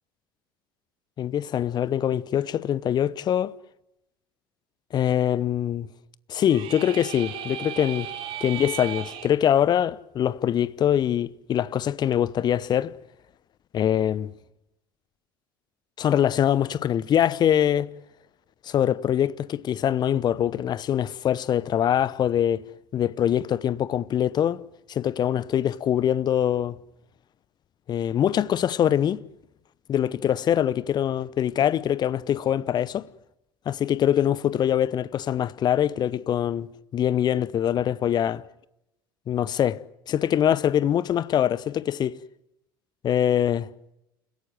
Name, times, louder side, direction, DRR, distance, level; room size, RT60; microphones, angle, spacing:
voice 1, 1.2-3.6 4.9-5.9 6.3-8.1 8.4-12.9 13.7-14.3 16.0-17.9 18.6-22.6 22.9-24.6 24.9-26.8 27.9-29.2 29.9-33.1 33.7-38.4 39.3-42.2 43.0-43.7, left 10 dB, 35° left, 0.9 m, -23 dB
sound 1, 6.4-9.3, right 11 dB, 50° right, 3.6 m, -36 dB
29.5 x 17.0 x 9.3 m
figure-of-eight pair, 65°, 12 cm